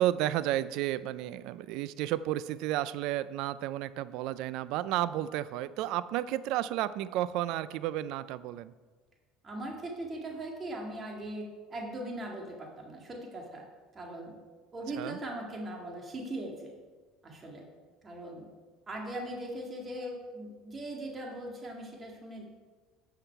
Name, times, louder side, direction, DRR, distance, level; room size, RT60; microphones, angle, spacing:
voice 1, 0.0-8.7 15.0-15.2, right 13 dB, 70° right, 16 dB, 0.4 m, -32 dB
voice 2, 9.4-13.6 13.9-14.4 14.7-16.7 17.2-17.7 18.0-18.5 18.9-22.4, right 1 dB, 30° right, 0 dB, 2.0 m, -40 dB
10.0 x 5.8 x 4.6 m, 1.3 s
supercardioid pair, 105°, 0 cm